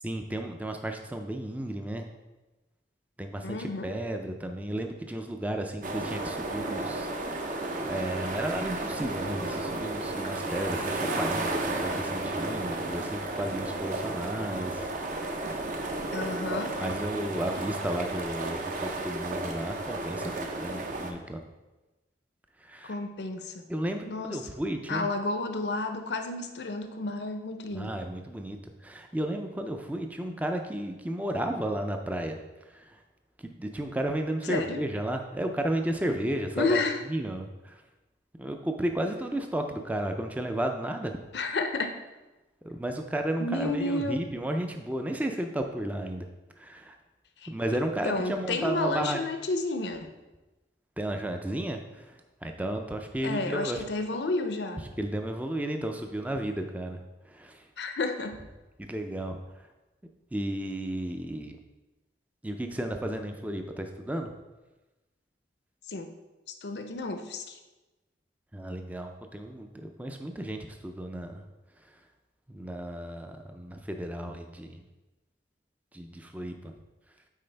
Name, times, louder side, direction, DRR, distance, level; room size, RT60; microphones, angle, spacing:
voice 1, 0.0-2.1 3.2-15.6 16.8-21.4 22.6-23.0 23.7-25.1 27.7-33.0 33.4-36.8 37.1-37.8 38.4-41.2 42.6-46.3 46.6-47.0 47.5-49.2 51.0-53.8 54.8-57.7 58.8-59.7 60.3-61.6 62.4-64.3 68.5-71.4 71.8-72.0 72.5-74.8 75.9-76.7, right 1 dB, 10° right, 4 dB, 0.4 m, -33 dB
voice 2, 3.4-3.9 16.1-16.8 22.9-23.6 24.1-24.4 24.9-27.9 34.5-34.8 36.6-37.0 41.3-41.9 43.4-44.2 47.4-47.5 48.0-50.1 53.2-54.8 57.8-58.4 65.9-66.1 66.6-67.6, left 2 dB, 70° left, 6 dB, 0.6 m, -31 dB
sound 1, 5.8-21.1, right 2 dB, 45° right, 0.6 m, -33 dB
9.3 x 4.2 x 3.3 m, 1.1 s
head